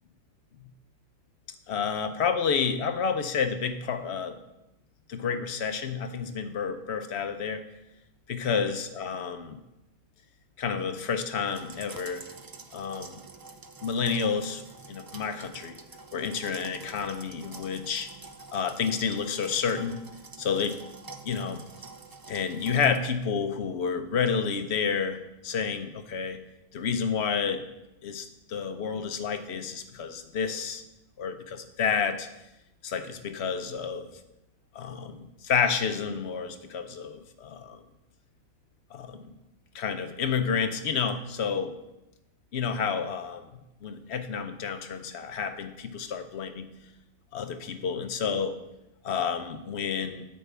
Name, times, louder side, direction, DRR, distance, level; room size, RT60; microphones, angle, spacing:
voice 1, 1.7-4.4 5.1-7.7 8.3-9.6 10.6-12.3 12.7-13.1 13.8-15.8 16.1-18.1 18.5-20.0 20.4-20.8 21.2-21.6 22.3-26.4 26.7-27.7 28.0-30.8 31.2-32.3 32.8-34.1 34.7-37.8 38.9-39.3 39.7-41.7 42.5-46.7 47.3-48.6 49.0-50.3, left 6 dB, 75° left, 9 dB, 1.0 m, -30 dB
sound 1, 11.5-23.0, right 3 dB, 35° right, 0.3 m, -47 dB
8.7 x 8.7 x 3.4 m, 0.91 s
omnidirectional pair, 1.1 m